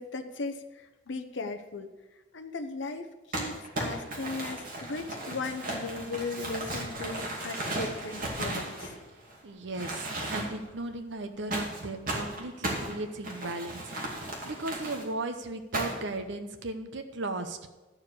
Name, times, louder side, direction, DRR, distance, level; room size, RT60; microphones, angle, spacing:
voice 1, 0.0-1.9 2.3-3.1 3.3-8.9, left 3 dB, 60° left, 7 dB, 0.8 m, -37 dB
Crumpling crinkling, 3.3-9.4 9.7-10.7 11.5-15.0 15.7-16.2, right 1 dB, 45° right, 2.5 m, -35 dB
voice 2, 9.4-13.9 14.4-17.7, right 2 dB, 60° right, 6 dB, 0.8 m, -36 dB
13.0 x 4.9 x 8.4 m, 1.1 s
head